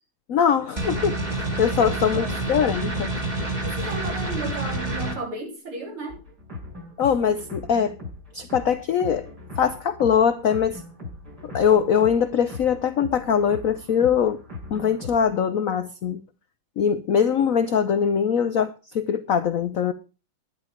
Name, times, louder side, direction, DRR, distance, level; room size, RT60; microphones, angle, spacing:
voice 1, 0.3-1.2 1.6-3.1 7.0-8.0 8.3-9.3 9.6-10.8 11.5-14.4 14.7-16.2 16.8-19.9, left 7 dB, 80° left, 0.7 m, -22 dB
sound 1, 0.8-5.1, right 2 dB, 20° right, 1.9 m, -28 dB
voice 2, 1.9-2.3 3.6-6.2, right 2 dB, 75° right, 4.4 m, -34 dB
sound 2, 6.1-15.3, left 2 dB, 45° right, 6.7 m, -39 dB
11.5 x 10.5 x 4.9 m
omnidirectional pair, 2.4 m